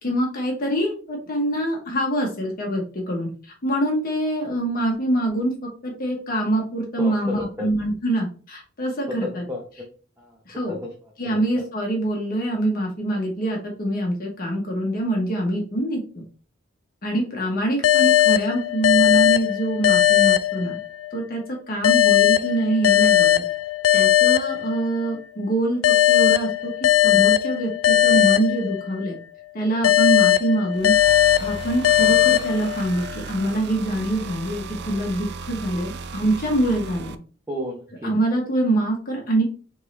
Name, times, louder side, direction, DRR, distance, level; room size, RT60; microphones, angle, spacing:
voice 1, 0.0-3.3 3.6-5.5 5.8-9.4 10.5-10.8 11.2-16.0 17.0-20.8 21.1-23.4 23.9-25.8 26.1-29.2 29.5-30.9 31.4-37.2 38.0-39.4, right 1 dB, 45° left, 0 dB, 1.0 m, -24 dB
voice 2, 7.0-7.7 9.1-9.9 10.2-11.6 37.5-38.1, left 1 dB, 15° right, -1 dB, 0.7 m, -33 dB
sound 1, 17.8-21.2 21.8-25.2 25.8-29.2 29.8-33.2, left 13 dB, 80° left, 0.3 m, -19 dB
sound 2, 30.7-37.1, right 4 dB, 55° right, 0.4 m, -36 dB
3.6 x 3.1 x 4.0 m, 0.40 s
head